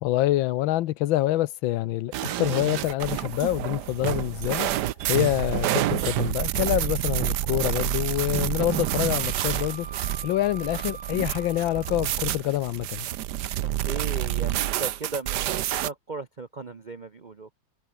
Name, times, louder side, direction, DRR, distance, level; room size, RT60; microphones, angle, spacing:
voice 1, 0.0-4.7 5.1-9.9 10.2-13.1, left 14 dB, 85° left, 1.5 m, -26 dB
sound 1, 2.1-15.9, right 13 dB, 65° right, 1.2 m, -28 dB
Wind instrument woodwind instrument, 8.6-12.2, right 4 dB, 30° right, 2.0 m, -44 dB
voice 2, 13.6-17.6, right 4 dB, 50° right, 0.5 m, -37 dB
omnidirectional pair, 2.1 m